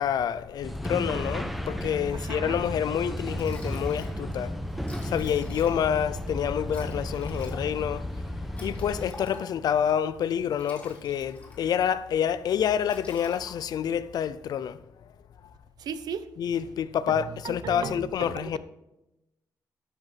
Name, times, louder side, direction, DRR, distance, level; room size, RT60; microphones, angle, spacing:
voice 1, 0.0-4.5 5.0-8.1 8.6-14.8 16.4-18.6, left 9 dB, 75° left, 0.5 m, -28 dB
sound 1, 0.6-9.1, equal, ahead, 0.9 m, -34 dB
voice 2, 2.1-2.6 15.8-16.2 17.1-18.6, right 7 dB, 80° right, 0.7 m, -36 dB
Liquid, 2.9-3.0 3.3-4.2 4.5-4.6 4.8-6.0 6.7-9.7 10.4-11.9 12.2-12.5 12.8-13.9, left 1 dB, 20° left, 2.7 m, -48 dB
12.0 x 5.4 x 5.7 m
cardioid pair, 115°, 7 cm